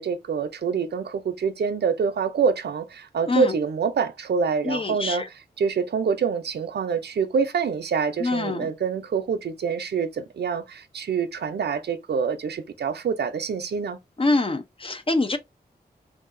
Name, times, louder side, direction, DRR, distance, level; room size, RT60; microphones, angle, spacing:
voice 1, 0.0-14.0, right 6 dB, 85° right, 0.5 m, -26 dB
voice 2, 4.6-5.3 8.2-8.7 14.2-15.4, left 2 dB, 35° left, 0.6 m, -24 dB
3.5 x 2.6 x 2.5 m
wide cardioid pair, 90°, 17 cm